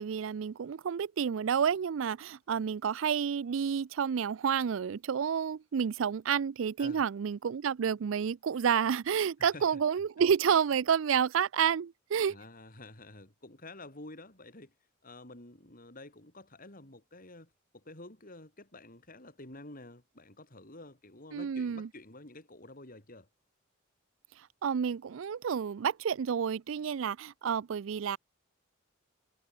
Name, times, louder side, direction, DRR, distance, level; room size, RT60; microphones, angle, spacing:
voice 1, 0.0-12.4 21.3-21.9 24.6-28.2, right 7 dB, 70° right, 0.4 m, -30 dB
voice 2, 9.4-9.8 12.3-14.7 15.0-23.3, left 2 dB, 45° left, 5.9 m, -50 dB
head